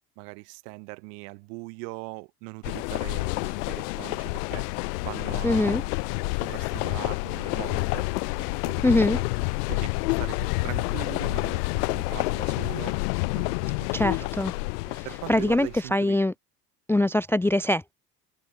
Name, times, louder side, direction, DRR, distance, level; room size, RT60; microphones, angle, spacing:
voice 1, 0.2-4.7 5.0-5.9 6.3-8.1 8.4-9.3 9.7-13.0 13.4-14.3 14.9-16.2, right 30 dB, 65° right, 3.1 m, -40 dB
Slow Moving Steam Train, 2.6-15.8, left 25 dB, 70° left, 0.7 m, -29 dB
voice 2, 5.4-5.8 8.8-9.2 13.9-14.5 14.9-16.3 16.9-17.9, left 1 dB, 5° left, 0.5 m, -23 dB
open air
hypercardioid pair, 65°, 49 cm